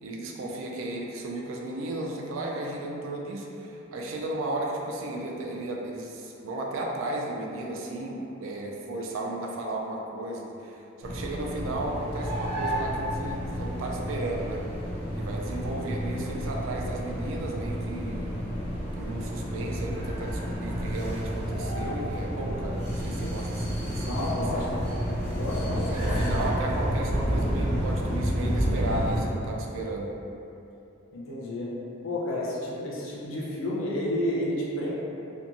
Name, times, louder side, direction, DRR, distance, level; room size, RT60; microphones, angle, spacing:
voice 1, 0.0-14.6 15.1-18.3 19.0-24.7 25.9-30.2, right 2 dB, 80° right, -1 dB, 0.4 m, -34 dB
sound 1, 11.0-29.2, equal, 5° right, 1.0 m, -30 dB
voice 2, 24.0-24.8 25.3-26.4 31.1-31.7 32.0-34.9, left 1 dB, 85° left, -5 dB, 0.6 m, -31 dB
2.8 x 2.2 x 2.5 m, 2.8 s
head